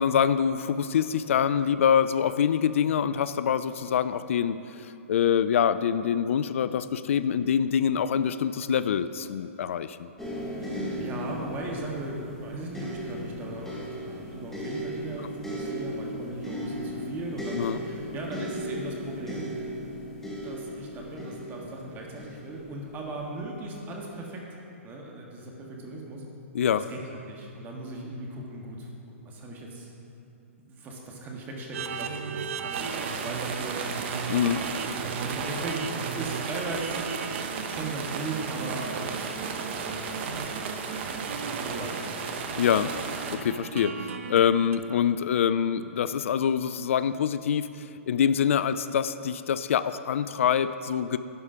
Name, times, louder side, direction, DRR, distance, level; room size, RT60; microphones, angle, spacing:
voice 1, 0.0-10.1 17.5-17.8 26.5-26.8 34.3-34.6 42.6-51.2, left 8 dB, 70° left, 14 dB, 0.3 m, -25 dB
sound 1, 10.2-23.3 24.1-24.3, equal, 5° left, 1.9 m, -36 dB
voice 2, 10.6-19.5 20.4-24.4 24.8-26.2 26.7-29.9 30.6-35.9 36.1-37.0 37.7-42.2, right 2 dB, 25° right, -1 dB, 1.6 m, -38 dB
sound 2, 31.7-44.8, right 6 dB, 65° right, 0.6 m, -38 dB
sound 3, 32.7-43.4, right 5 dB, 50° right, 0.9 m, -34 dB
11.5 x 5.0 x 5.7 m, 2.7 s
hypercardioid pair, 125°, 7 cm